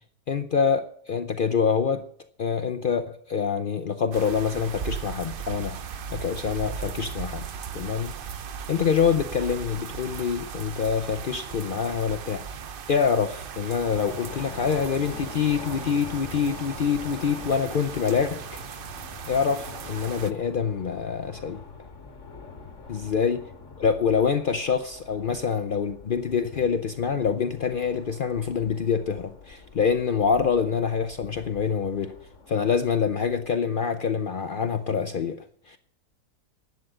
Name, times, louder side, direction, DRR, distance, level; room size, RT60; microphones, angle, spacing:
voice 1, 0.3-2.1 2.4-5.8 6.1-7.5 7.7-8.1 8.7-12.4 12.9-18.6 19.3-21.6 22.9-23.4 23.8-32.1 32.5-35.8, left 6 dB, 80° left, 0.4 m, -26 dB
sound 1, 4.1-20.3, right 7 dB, 85° right, 0.4 m, -38 dB
sound 2, 13.8-33.5, left 4 dB, 45° left, 1.9 m, -44 dB
11.5 x 8.5 x 7.8 m
omnidirectional pair, 1.8 m